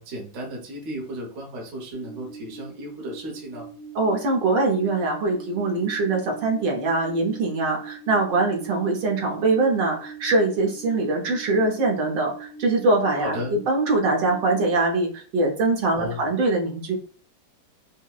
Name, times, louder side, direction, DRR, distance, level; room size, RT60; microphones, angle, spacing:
voice 1, 0.0-3.7 13.1-13.6 15.9-16.2, equal, 45° right, -1 dB, 1.1 m, -34 dB
sound 1, 2.0-14.8, right 4 dB, 55° left, 1.0 m, -42 dB
voice 2, 3.9-17.0, right 3 dB, 70° right, 0 dB, 1.4 m, -23 dB
5.4 x 2.0 x 2.3 m, 0.41 s
omnidirectional pair, 2.1 m